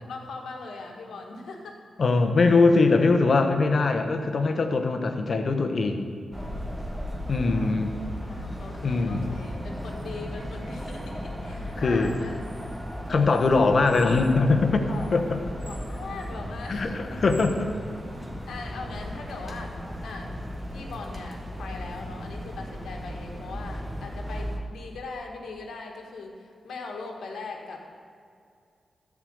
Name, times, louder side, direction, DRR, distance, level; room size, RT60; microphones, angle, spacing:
voice 1, 0.1-1.8 7.0-7.7 8.2-12.4 13.1-13.5 14.9-15.1 15.6-17.2 18.5-20.4 20.7-27.8, left 3 dB, 80° left, 1 dB, 1.7 m, -40 dB
voice 2, 2.0-6.1 7.3-7.9 8.8-9.3 11.8-12.1 13.1-15.2 16.7-17.7, left 3 dB, 60° left, 6 dB, 1.2 m, -22 dB
sound 1, 6.3-24.6, equal, 15° right, 2.0 m, -36 dB
13.5 x 5.0 x 7.9 m, 2.3 s
cardioid pair, 55°, 0 cm